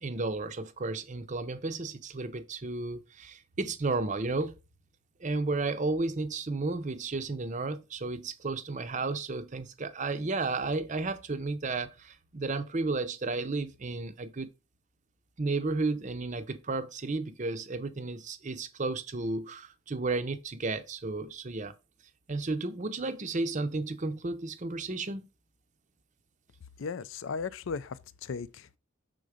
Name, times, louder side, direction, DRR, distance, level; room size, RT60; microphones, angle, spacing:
voice 1, 0.0-4.6 5.2-14.5 15.4-21.7 22.3-25.3, right 3 dB, 35° right, 0.6 m, -33 dB
voice 2, 26.8-28.8, left 5 dB, 65° left, 0.4 m, -36 dB
6.6 x 3.8 x 4.9 m
head